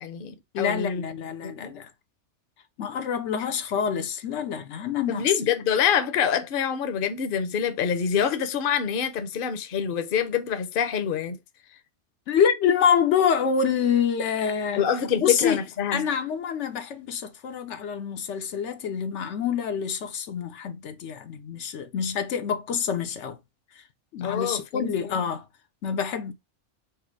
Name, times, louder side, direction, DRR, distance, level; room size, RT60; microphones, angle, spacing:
voice 1, 0.0-1.0 1.4-1.7 5.1-11.4 14.7-16.1 24.2-24.9, left 8 dB, 55° left, 0.8 m, -26 dB
voice 2, 0.5-1.9 2.8-5.3 12.3-14.8 15.2-15.6 15.9-23.4 24.1-25.4 25.8-26.3, left 7 dB, 80° left, 1.0 m, -26 dB
4.8 x 2.0 x 4.4 m
omnidirectional pair, 1.2 m